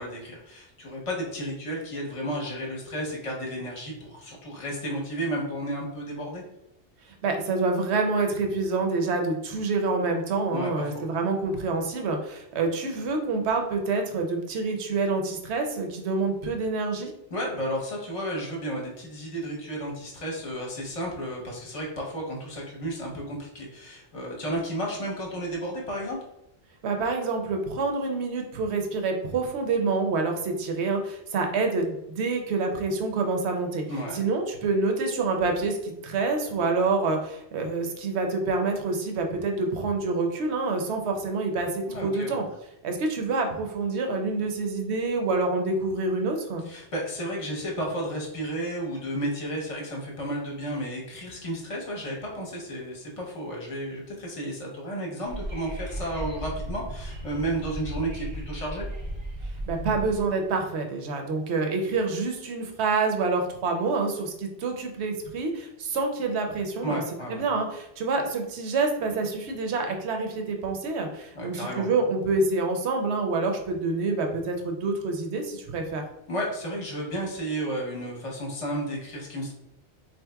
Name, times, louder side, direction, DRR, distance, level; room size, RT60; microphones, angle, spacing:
voice 1, 0.0-6.4 10.5-11.0 17.3-26.2 33.9-34.2 41.9-42.4 46.7-58.9 66.8-67.4 71.3-71.9 76.3-79.5, right 1 dB, 35° left, -2 dB, 0.8 m, -32 dB
voice 2, 7.2-17.1 26.8-33.9 34.1-42.4 42.8-46.6 59.7-67.0 67.3-76.0, right 3 dB, 75° right, 3 dB, 0.9 m, -27 dB
Wind / Subway metro underground, 55.2-60.2, right 1 dB, 40° right, 0.4 m, -36 dB
3.9 x 2.8 x 2.2 m, 0.83 s
omnidirectional pair, 1.2 m